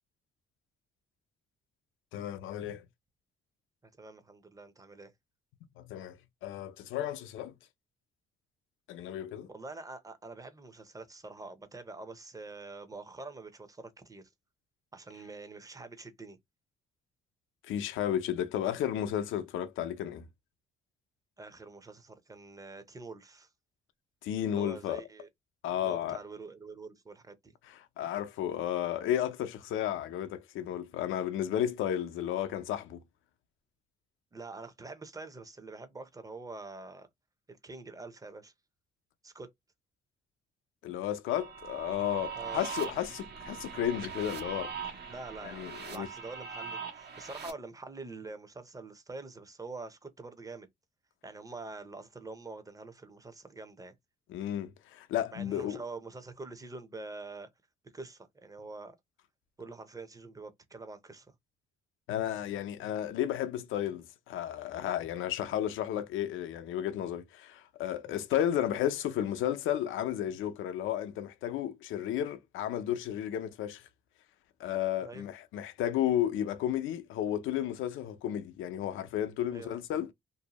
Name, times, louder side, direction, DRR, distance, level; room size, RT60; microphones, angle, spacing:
voice 1, 2.1-2.9 5.8-7.5 8.9-9.5 17.6-20.3 24.2-25.0 25.6-26.2 27.7-33.0 40.8-44.7 45.4-46.1 54.3-55.8 62.1-73.9 74.6-80.1, left 11 dB, 85° left, 0.5 m, -33 dB
voice 2, 3.8-5.1 9.5-14.2 14.9-16.4 21.4-23.5 24.5-25.3 25.8-27.5 34.3-37.1 37.5-38.5 39.2-39.5 42.3-42.7 45.1-50.7 51.2-53.9 55.3-57.5 57.8-59.0 59.6-61.3 68.0-68.2 75.0-75.3 79.5-79.8, right 3 dB, 15° right, 0.6 m, -45 dB
sound 1, 41.3-47.5, right 6 dB, 55° right, 0.7 m, -41 dB
2.6 x 2.0 x 2.9 m
cardioid pair, 90°, 20 cm